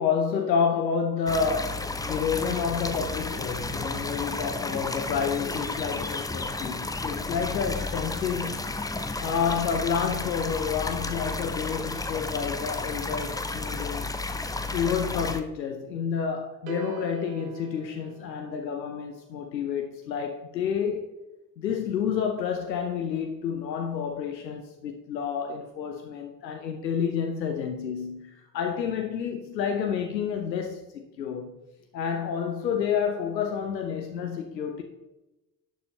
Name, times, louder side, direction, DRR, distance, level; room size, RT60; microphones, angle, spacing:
voice 1, 0.0-8.7 9.2-14.1 14.7-21.1 21.6-31.6 31.9-34.8, left 7 dB, 85° left, 0.7 m, -29 dB
sound 1, 1.3-15.4, left 3 dB, 10° left, 0.6 m, -32 dB
sound 2, 16.7-19.0, right 2 dB, 70° right, 1.0 m, -39 dB
12.0 x 6.7 x 2.8 m
figure-of-eight pair, 50°, 49 cm